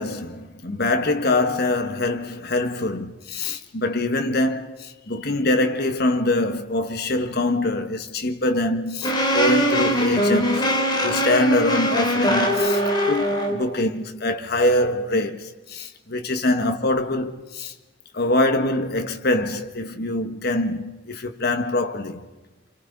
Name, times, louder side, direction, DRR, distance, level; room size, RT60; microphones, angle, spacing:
voice 1, 0.0-10.7 11.0-17.7 18.1-22.2, left 2 dB, 50° left, 1.5 m, -24 dB
sound 1, 9.0-13.6, equal, 20° left, 3.7 m, -21 dB
29.5 x 26.5 x 5.4 m
head